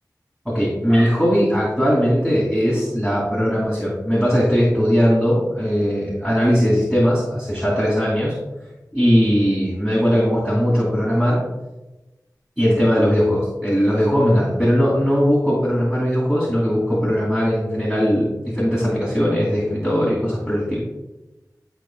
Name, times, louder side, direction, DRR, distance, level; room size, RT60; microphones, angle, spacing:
voice 1, 0.4-8.3 8.9-11.4 12.6-20.8, equal, 5° right, -7 dB, 2.7 m, -19 dB
12.0 x 5.6 x 2.3 m, 1.0 s
wide cardioid pair, 50°, 7 cm